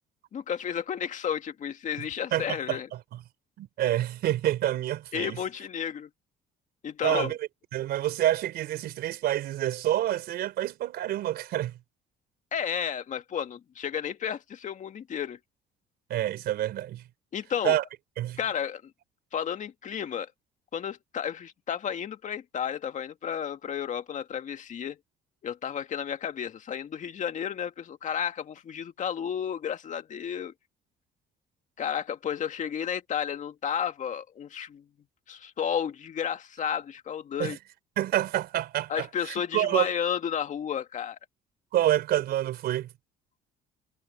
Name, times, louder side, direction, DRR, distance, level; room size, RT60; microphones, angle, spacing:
voice 1, 0.3-2.9 5.1-6.1 6.8-7.3 12.5-15.4 17.3-17.8 18.4-18.9 19.3-20.3 20.7-25.0 25.4-30.5 31.8-34.8 35.3-37.6 38.9-41.2, left 8 dB, 45° left, 2.0 m, -32 dB
voice 2, 2.0-3.2 3.6-5.4 7.0-11.7 16.1-17.0 17.6-17.8 18.2-18.4 37.4-37.6 38.0-39.9 41.7-42.9, right 13 dB, 70° right, 3.9 m, -28 dB
cardioid pair, 110°, 17 cm